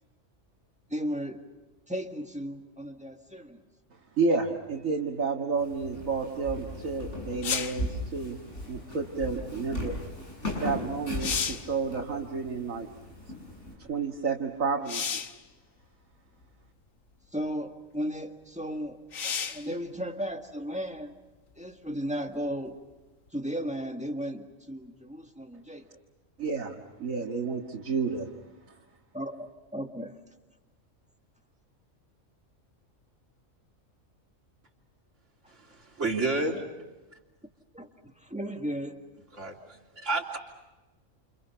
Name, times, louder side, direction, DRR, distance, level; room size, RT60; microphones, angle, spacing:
voice 1, 0.9-1.4 1.9-3.6 15.0-15.1 17.3-21.1 21.6-22.8 23.3-26.0 29.1-30.2 37.7-39.0, equal, 5° right, 4 dB, 1.8 m, -35 dB
voice 2, 4.2-8.4 8.7-9.9 10.6-12.9 13.8-15.2 26.4-26.7 27.0-28.3, right 4 dB, 85° right, -1 dB, 2.2 m, -30 dB
Walk footsteps, 5.6-13.7, left 1 dB, 60° left, 7.7 m, -38 dB
sound 1, 7.4-7.9 10.5-10.6 11.0-11.7 14.9-15.4 16.4-16.5 19.1-19.7 23.3-23.4, left 6 dB, 85° left, 1.6 m, -32 dB
voice 3, 35.5-36.6 39.3-39.6 40.0-40.4, right 3 dB, 65° right, 1 dB, 3.6 m, -30 dB
29.5 x 29.0 x 5.7 m, 1.1 s
omnidirectional pair, 1.4 m